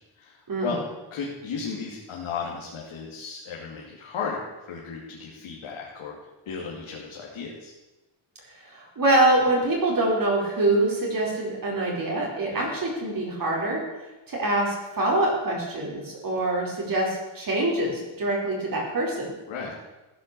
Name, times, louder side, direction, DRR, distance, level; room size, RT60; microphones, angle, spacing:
voice 1, 0.2-0.8 1.1-6.1 6.5-7.7 12.5-12.7 19.5-19.8, left 5 dB, 90° left, -3 dB, 2.7 m, -35 dB
voice 2, 8.5-13.8 14.3-19.3, right 2 dB, 45° right, -3 dB, 4.7 m, -25 dB
15.0 x 9.5 x 6.9 m, 1.1 s
cardioid pair, 115°, 47 cm